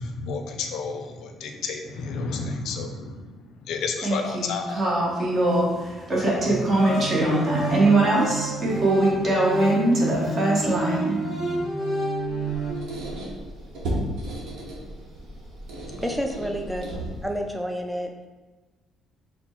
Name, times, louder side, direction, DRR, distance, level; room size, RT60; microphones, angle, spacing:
voice 1, 0.0-4.8, left 4 dB, 65° left, 5 dB, 0.4 m, -31 dB
voice 2, 4.0-4.5 4.7-11.2, right 2 dB, 25° right, -4 dB, 0.9 m, -22 dB
sound 1, 6.4-12.7, right 1 dB, 15° left, 1.2 m, -28 dB
Squeak, 12.2-17.4, right 1 dB, 55° right, 0.9 m, -34 dB
voice 3, 16.0-16.8 17.2-18.1, equal, ahead, 2 dB, 0.3 m, -29 dB
4.2 x 2.1 x 4.3 m, 1.3 s
cardioid pair, 170°, 0 cm